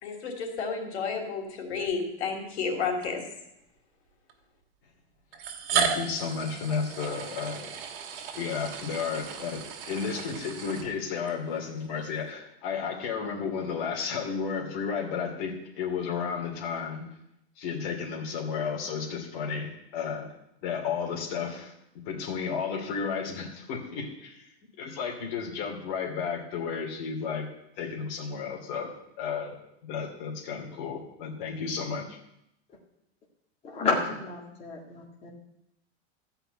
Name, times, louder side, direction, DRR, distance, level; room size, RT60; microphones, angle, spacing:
voice 1, 0.0-3.2, left 5 dB, 80° left, 3 dB, 3.5 m, -31 dB
sound 1, 1.9-2.0 3.0-3.1 4.3-4.4 5.3-11.3, right 7 dB, 55° right, 2.1 m, -34 dB
voice 2, 5.7-7.7 8.3-17.1 17.6-20.3 20.6-21.7 22.1-24.5 24.8-27.5 27.8-29.6 29.8-32.2, left 6 dB, 45° left, 0 dB, 2.7 m, -33 dB
voice 3, 33.6-35.3, left 3 dB, 20° left, -3 dB, 2.1 m, -30 dB
14.0 x 5.7 x 9.0 m, 0.82 s
supercardioid pair, 170°, 33 cm